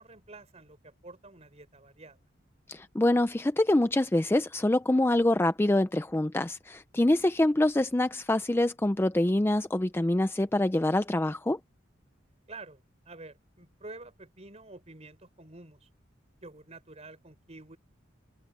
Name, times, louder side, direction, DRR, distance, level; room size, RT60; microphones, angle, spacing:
voice 1, 0.0-2.2 12.5-15.9 16.4-17.8, right 2 dB, 35° right, 5.0 m, -48 dB
voice 2, 2.7-11.6, left 1 dB, 10° left, 0.4 m, -25 dB
head